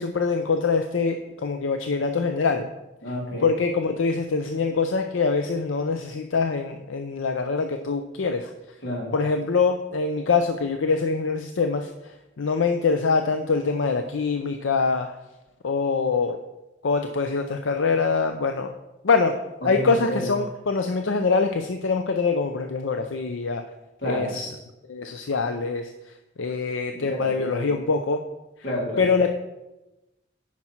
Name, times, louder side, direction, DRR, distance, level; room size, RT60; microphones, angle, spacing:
voice 1, 0.0-2.7 3.4-8.5 9.1-15.2 15.6-16.4 16.8-18.7 19.0-19.3 19.6-23.6 24.0-24.5 24.9-28.2 29.0-29.3, left 4 dB, 85° left, 6 dB, 0.6 m, -24 dB
voice 2, 3.0-3.5 8.8-9.1 19.6-20.3 24.0-24.4 26.9-27.8 28.6-29.1, left 1 dB, 65° left, -2 dB, 2.7 m, -30 dB
9.6 x 6.0 x 4.5 m, 0.98 s
head